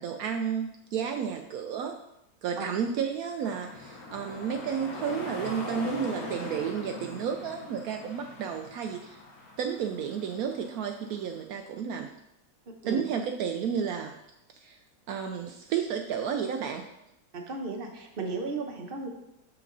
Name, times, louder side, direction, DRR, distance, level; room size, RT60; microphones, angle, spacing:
voice 1, 0.0-2.0 2.4-9.2 9.6-12.1 12.9-14.2 14.5-14.8 15.1-16.8, right 7 dB, 75° right, 4 dB, 1.0 m, -32 dB
sound 1, 3.4-11.4, left 2 dB, 70° left, 1.6 m, -41 dB
voice 2, 12.7-13.0 17.3-19.1, right 3 dB, 40° right, 2 dB, 1.1 m, -35 dB
7.1 x 5.9 x 3.9 m, 0.84 s
omnidirectional pair, 1.6 m